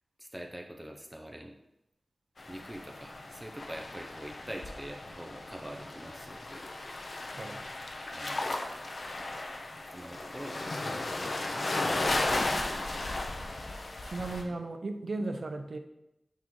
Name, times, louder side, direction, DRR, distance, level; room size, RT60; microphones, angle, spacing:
voice 1, 0.2-1.5 2.5-6.7 8.1-8.5 9.9-12.6 14.4-14.5, right 1 dB, 10° right, 2 dB, 0.6 m, -45 dB
sound 1, 2.4-14.4, left 2 dB, 70° left, 0.6 m, -35 dB
voice 2, 14.0-15.8, right 2 dB, 65° right, 6 dB, 0.6 m, -36 dB
8.2 x 3.1 x 3.7 m, 0.87 s
wide cardioid pair, 85°, 0 cm